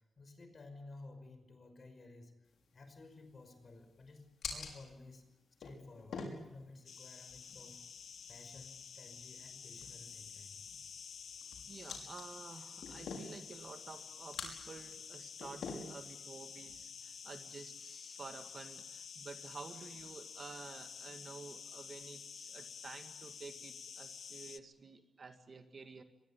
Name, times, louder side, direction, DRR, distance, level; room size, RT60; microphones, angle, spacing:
voice 1, 0.0-2.3 2.7-5.2 5.6-7.8 8.3-10.6, left 3 dB, 40° left, 8 dB, 5.5 m, -54 dB
sound 1, 2.5-17.8, left 4 dB, 85° left, 5.9 m, -50 dB
sound 2, 6.9-24.6, left 7 dB, 60° left, 0.9 m, -50 dB
voice 2, 11.7-26.0, right 4 dB, 40° right, 7 dB, 2.0 m, -51 dB
24.5 x 22.0 x 8.5 m, 0.98 s
wide cardioid pair, 145°, 0 cm